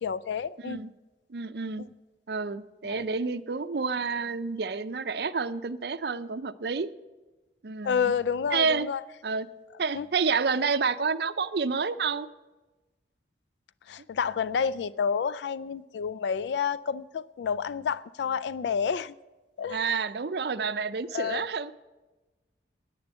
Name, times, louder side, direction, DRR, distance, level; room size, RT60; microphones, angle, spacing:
voice 1, 0.0-0.8 2.8-3.0 7.8-9.0 9.9-10.1 13.9-19.1 19.6-20.0 21.1-21.4, left 6 dB, 75° left, 0.3 m, -29 dB
voice 2, 0.6-0.9 1.3-1.9 2.3-6.9 7.6-8.1 8.5-8.9 9.2-9.5 9.8-12.3 19.7-21.7, right 5 dB, 65° right, 0.5 m, -29 dB
10.5 x 10.0 x 7.9 m
head